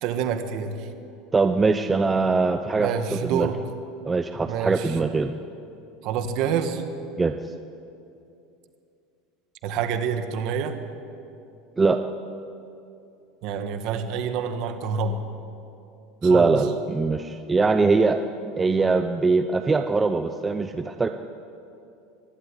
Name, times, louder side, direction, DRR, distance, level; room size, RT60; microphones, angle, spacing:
voice 1, 0.0-0.9 2.8-3.5 4.5-5.0 6.0-6.8 9.6-10.7 13.4-15.2 16.2-16.5, right 7 dB, 45° right, 8 dB, 1.7 m, -27 dB
voice 2, 1.3-3.5 4.1-5.4 7.2-7.4 11.8-12.0 16.2-18.2 18.6-21.1, right 4 dB, 10° right, 7 dB, 0.5 m, -22 dB
23.5 x 12.0 x 9.9 m, 2.6 s
supercardioid pair, 170°, 0 cm